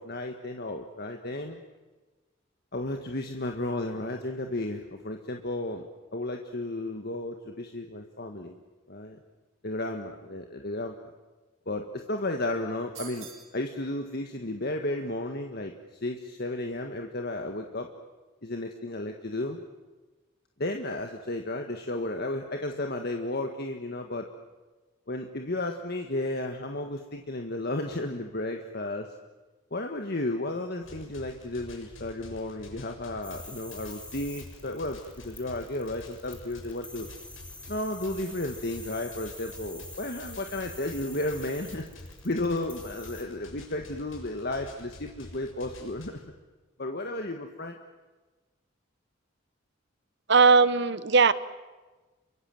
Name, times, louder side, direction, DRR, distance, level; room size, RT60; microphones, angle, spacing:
voice 1, 0.0-1.6 2.7-5.9 6.1-8.6 8.9-9.2 9.6-11.1 11.6-13.3 13.5-15.7 16.0-17.9 18.4-19.6 20.6-24.3 25.1-29.1 29.7-35.0 35.2-37.1 37.7-41.9 42.2-46.1 46.8-47.8, left 2 dB, 50° left, 4 dB, 1.7 m, -33 dB
sound 1, 12.9-13.6, right 9 dB, 80° right, 4.7 m, -44 dB
sound 2, 30.8-46.1, left 1 dB, 80° left, 7.1 m, -48 dB
sound 3, 33.2-43.2, left 2 dB, 5° left, 2.6 m, -46 dB
voice 2, 50.3-51.3, right 4 dB, 60° right, 15 dB, 1.0 m, -19 dB
29.0 x 24.0 x 7.9 m, 1.2 s
head